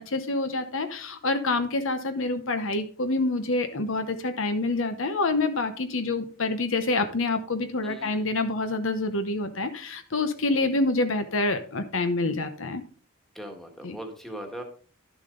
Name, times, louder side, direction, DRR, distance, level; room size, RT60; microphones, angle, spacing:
voice 1, 0.1-12.8 13.8-14.0, left 2 dB, 60° left, 9 dB, 0.9 m, -27 dB
voice 2, 7.8-8.4 13.3-14.6, right 1 dB, ahead, 3 dB, 1.7 m, -40 dB
11.5 x 7.1 x 3.8 m, 0.40 s
head